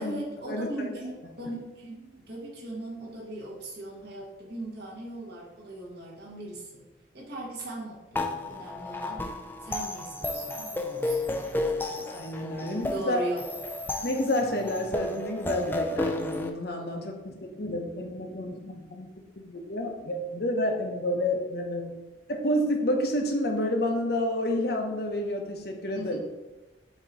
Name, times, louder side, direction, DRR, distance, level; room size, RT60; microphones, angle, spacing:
voice 1, 0.0-6.8 7.1-9.2 9.6-12.0 12.6-13.5 25.9-26.2, right 1 dB, 60° right, -5 dB, 1.6 m, -39 dB
sound 1, 8.1-16.5, left 2 dB, 10° left, 0.4 m, -32 dB
voice 2, 12.0-13.2 14.0-19.1 19.4-21.9 22.3-26.2, left 1 dB, 55° left, 3 dB, 0.8 m, -29 dB
8.1 x 2.9 x 4.1 m, 1.1 s
head